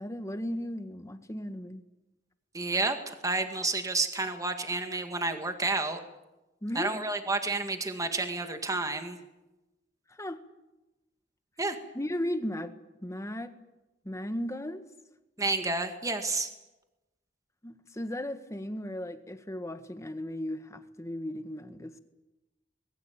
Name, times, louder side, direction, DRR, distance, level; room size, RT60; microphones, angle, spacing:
voice 1, 0.0-1.8 6.6-7.0 10.1-10.4 11.9-13.6 14.0-14.8 17.6-22.0, left 1 dB, 15° left, 9 dB, 1.7 m, -36 dB
voice 2, 2.5-6.0 6.8-9.2 11.6-11.8 15.4-16.5, right 3 dB, 20° right, 6 dB, 2.0 m, -30 dB
25.5 x 21.0 x 8.8 m, 1.0 s
head